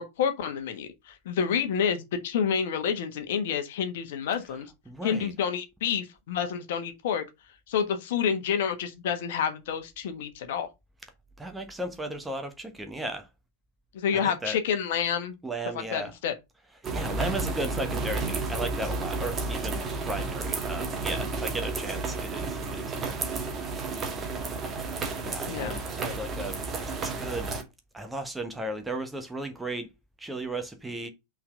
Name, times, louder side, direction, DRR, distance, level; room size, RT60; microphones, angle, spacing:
voice 1, 0.0-4.7 5.0-7.2 7.7-10.7 13.9-15.3 15.7-16.3 25.4-25.8, left 7 dB, 55° left, 1.3 m, -29 dB
voice 2, 4.9-5.3 11.4-13.3 14.1-14.6 15.4-16.1 16.9-23.2 25.2-27.6 27.9-29.9 30.2-31.1, right 1 dB, 5° right, 1.2 m, -35 dB
sound 1, 16.8-27.6, right 3 dB, 25° right, 1.5 m, -32 dB
5.8 x 4.0 x 5.1 m
figure-of-eight pair, 90°, 0 cm